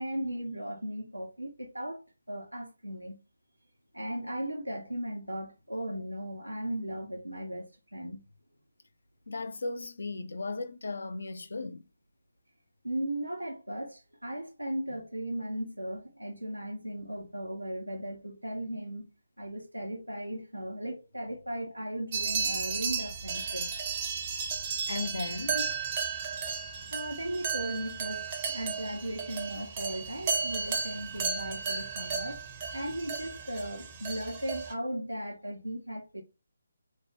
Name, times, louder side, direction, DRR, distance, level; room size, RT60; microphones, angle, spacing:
voice 1, 0.0-2.0 2.3-3.2 3.9-8.2 12.8-19.1 19.4-23.7 26.9-32.4 32.7-36.2, right 1 dB, 85° right, 0.8 m, -37 dB
voice 2, 9.3-11.8 24.9-25.7, left 3 dB, 55° left, 0.4 m, -36 dB
sound 1, 22.1-34.7, right 5 dB, 25° right, 0.6 m, -34 dB
3.1 x 2.1 x 2.8 m
figure-of-eight pair, 145°, 0 cm